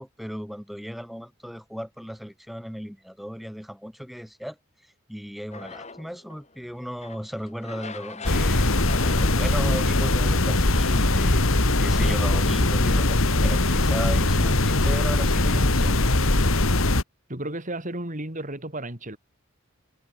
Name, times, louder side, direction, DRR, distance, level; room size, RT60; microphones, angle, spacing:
voice 1, 0.0-4.6 5.1-11.4 11.8-16.0, equal, ahead, 4.3 m, -35 dB
sound 1, 5.5-12.9, left 4 dB, 30° left, 5.6 m, -43 dB
sound 2, 8.3-17.0, left 2 dB, 70° left, 2.2 m, -21 dB
voice 2, 17.3-19.2, right 1 dB, 35° right, 3.5 m, -33 dB
head